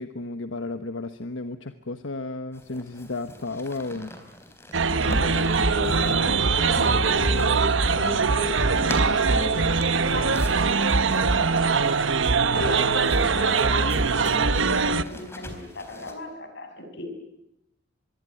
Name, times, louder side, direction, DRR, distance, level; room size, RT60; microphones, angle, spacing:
voice 1, 0.0-4.1, left 2 dB, 85° left, 9 dB, 1.3 m, -33 dB
sound 1, 2.5-16.1, left 1 dB, 15° left, 4.2 m, -44 dB
sound 2, 4.7-15.0, right 4 dB, 80° right, 1.1 m, -22 dB
voice 2, 5.0-11.8 12.5-17.1, left 1 dB, 65° left, 6 dB, 6.9 m, -34 dB
25.5 x 22.5 x 10.0 m, 0.84 s
head